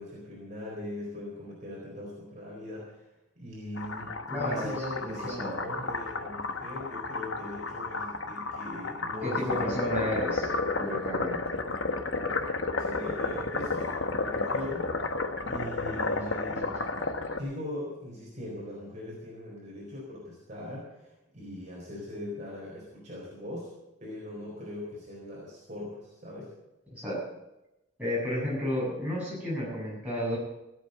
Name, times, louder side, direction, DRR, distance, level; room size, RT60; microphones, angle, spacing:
voice 1, 0.0-3.1 3.4-9.8 12.8-14.9 15.4-16.7 17.4-23.7 24.0-26.5, left 1 dB, 35° right, -4 dB, 4.3 m, -40 dB
sound 1, 3.8-17.4, left 3 dB, 70° left, 1.2 m, -32 dB
voice 2, 4.3-5.5 9.2-10.5 10.8-11.4 13.2-13.3 16.2-16.3 16.6-17.1 26.9-27.3 28.0-30.4, equal, 5° right, -7 dB, 7.2 m, -32 dB
16.5 x 8.6 x 8.0 m, 0.92 s
head